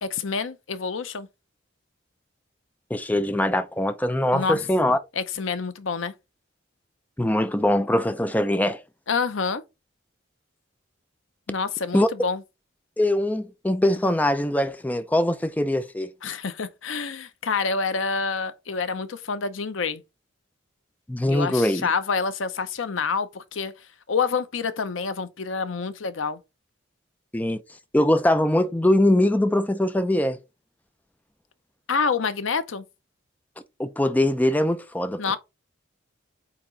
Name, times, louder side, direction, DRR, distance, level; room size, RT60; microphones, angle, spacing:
voice 1, 0.0-1.3 4.3-4.6 5.2-6.1 9.1-9.6 11.5-12.4 16.2-20.0 21.3-23.7 24.1-26.4 31.9-32.8 35.2-35.4, left 5 dB, 80° left, 0.7 m, -27 dB
voice 2, 2.9-5.0 7.2-8.8 11.9-12.1 13.0-16.1 21.1-21.9 27.3-27.6 27.9-30.4 33.8-35.2, left 1 dB, 10° left, 0.4 m, -22 dB
8.5 x 3.0 x 3.8 m
head